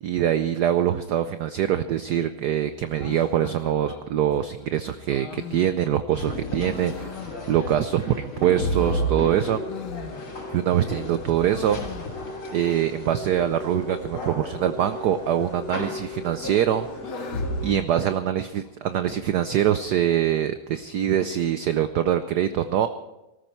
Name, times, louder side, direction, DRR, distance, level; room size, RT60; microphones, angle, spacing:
voice 1, 0.0-9.6 10.5-11.8 12.5-16.9 17.1-22.9, right 10 dB, 70° right, 10 dB, 1.0 m, -24 dB
sound 1, 3.0-8.0 8.3-10.7 11.0-12.6 12.8-12.9 13.1-13.2 13.9-14.3 15.3-15.9 16.3-18.7, left 7 dB, 55° left, 1.6 m, -42 dB
sound 2, 6.1-17.7, equal, 75° left, 3.9 m, -34 dB
sound 3, 9.3-17.7, left 3 dB, 35° left, 1.2 m, -39 dB
19.0 x 14.0 x 4.5 m, 0.97 s
omnidirectional pair, 2.3 m